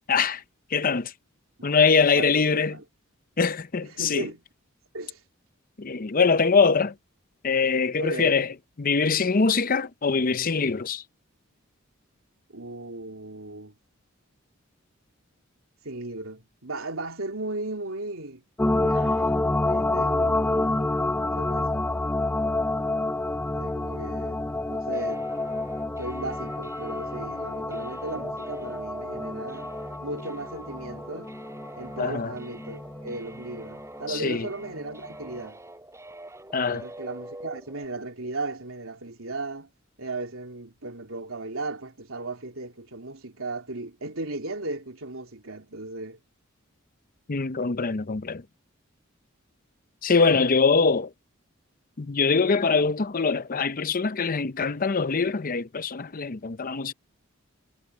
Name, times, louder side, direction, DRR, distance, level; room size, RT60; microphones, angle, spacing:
voice 1, 0.1-0.4 0.7-1.1 1.6-2.8 3.4-4.2 5.8-6.9 7.4-8.5 8.8-11.0 32.0-32.3 34.2-34.5 36.5-36.8 47.3-48.4 50.0-51.1 52.0-56.9, left 5 dB, 40° left, 0.7 m, -23 dB
voice 2, 2.0-2.8 3.8-4.4 4.9-5.2 8.0-8.6 12.5-13.7 15.8-18.4 18.7-19.4 19.6-21.9 23.5-25.3 26.0-29.7 30.0-31.4 31.8-35.6 36.7-39.7 40.0-46.2, right 2 dB, 80° right, 3.4 m, -36 dB
sound 1, 18.6-34.3 34.7-34.8, left 2 dB, 10° left, 0.3 m, -28 dB
sound 2, 24.9-37.9, right 1 dB, 15° right, 5.9 m, -44 dB
head